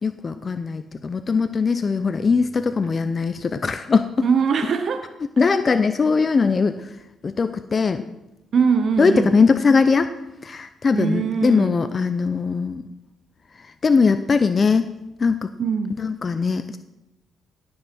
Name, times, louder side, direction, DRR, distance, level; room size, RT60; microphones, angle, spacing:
voice 1, 0.0-4.3 5.4-6.9 7.2-8.1 9.0-10.1 10.4-12.9 13.6-14.9 15.2-15.5 16.0-16.8, left 4 dB, 35° left, 10 dB, 0.6 m, -20 dB
voice 2, 4.2-5.0 8.5-9.4 10.9-11.8 15.6-16.0, right 6 dB, 55° right, 7 dB, 0.9 m, -21 dB
17.0 x 6.2 x 6.0 m, 0.91 s
cardioid pair, 90°, 0 cm